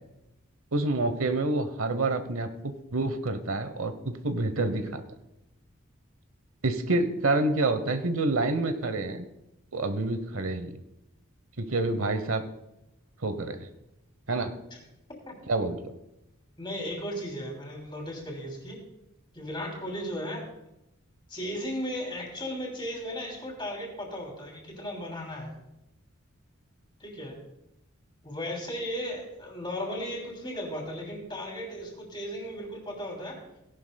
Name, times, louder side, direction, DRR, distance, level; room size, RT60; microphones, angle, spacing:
voice 1, 0.7-5.0 6.6-9.2 9.7-10.8 11.6-12.4 13.2-13.7 14.3-14.5 15.5-16.0, right 2 dB, 75° right, 10 dB, 1.0 m, -28 dB
voice 2, 16.6-18.8 19.3-20.5 21.3-25.5 27.0-27.4 28.2-33.4, equal, 20° left, -1 dB, 3.0 m, -36 dB
17.0 x 11.5 x 2.3 m, 0.89 s
head